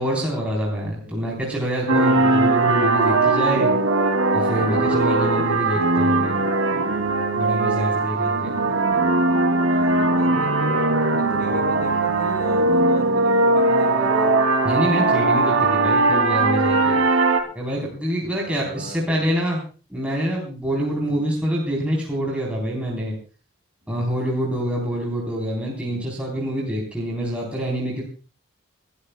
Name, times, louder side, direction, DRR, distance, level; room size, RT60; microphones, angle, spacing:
voice 1, 0.0-3.7 4.3-6.5 7.4-8.6 14.6-17.0 17.5-19.6 19.9-23.2 23.9-28.0, equal, 5° right, -4 dB, 3.8 m, -26 dB
sound 1, 1.9-17.4, right 2 dB, 85° right, 2.6 m, -19 dB
voice 2, 8.1-8.8 9.7-14.4 18.4-19.3 20.9-21.2 23.8-24.0 25.8-26.1, right 1 dB, 45° right, 1 dB, 5.9 m, -38 dB
28.5 x 12.5 x 2.3 m, 0.36 s
head